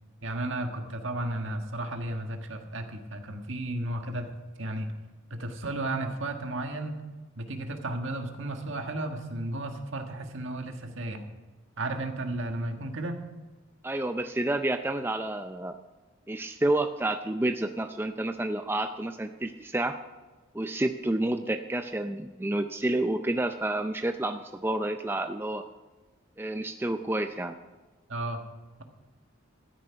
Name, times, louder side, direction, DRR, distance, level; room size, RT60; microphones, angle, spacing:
voice 1, 0.2-4.3 4.6-4.9 5.3-7.0 7.3-11.2 11.8-13.2 28.1-28.4, right 1 dB, 70° right, 5 dB, 1.5 m, -33 dB
voice 2, 13.8-15.7 16.3-20.0 20.5-25.6 26.4-27.5, right 1 dB, 10° right, 7 dB, 0.4 m, -29 dB
13.0 x 10.0 x 5.7 m, 1.2 s
head